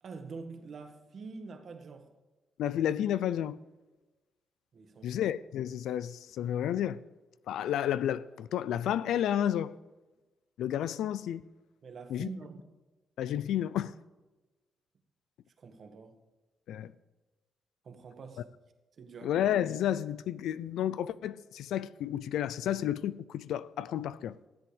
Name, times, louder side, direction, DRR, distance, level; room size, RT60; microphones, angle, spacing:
voice 1, 0.0-2.1 4.7-5.2 11.8-12.7 15.6-16.2 17.8-18.4 19.0-19.4, right 4 dB, 50° right, 1.8 m, -45 dB
voice 2, 2.6-3.6 5.0-7.0 7.5-9.7 10.6-11.4 12.1-12.3 13.2-13.9 16.7-16.9 19.2-24.4, left 10 dB, 85° left, 0.4 m, -31 dB
13.5 x 7.8 x 5.1 m
cardioid pair, 100°, 0 cm